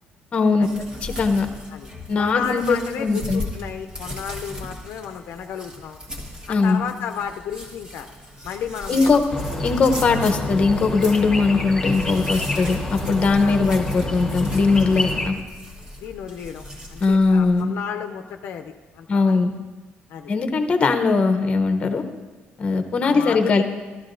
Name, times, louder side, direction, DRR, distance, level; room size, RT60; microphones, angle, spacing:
voice 1, 0.3-0.7 1.0-1.5 2.1-3.4 6.5-6.8 8.9-9.2 9.6-15.4 17.0-17.7 19.1-19.5 20.3-22.0 22.6-23.6, left 4 dB, 30° left, 7 dB, 0.8 m, -20 dB
sound 1, 0.6-17.6, left 1 dB, 20° right, 1.3 m, -38 dB
voice 2, 2.2-6.0 6.5-8.1 8.4-9.2 13.4-13.6 16.0-16.6 16.9-19.4 20.1-20.3 23.0-23.6, left 8 dB, 65° left, 6 dB, 0.5 m, -32 dB
sound 2, 9.3-15.3, left 1 dB, 10° left, 1.1 m, -28 dB
15.0 x 12.5 x 2.6 m, 1.2 s
cardioid pair, 165°, 4 cm